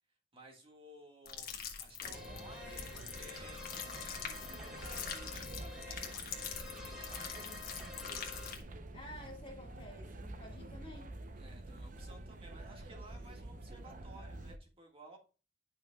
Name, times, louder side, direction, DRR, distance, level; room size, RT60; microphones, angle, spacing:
voice 1, 0.3-1.5 1.8-2.9 3.1-7.6 11.4-15.2, right 1 dB, 30° right, 1.8 m, -56 dB
sound 1, 1.3-8.6, left 7 dB, 55° left, 1.4 m, -44 dB
sound 2, 2.0-14.6, right 2 dB, 45° right, 0.7 m, -48 dB
sound 3, 2.1-8.5, left 3 dB, 5° right, 2.3 m, -49 dB
voice 2, 8.9-11.1, left 1 dB, 30° left, 1.9 m, -51 dB
11.0 x 5.8 x 2.3 m
head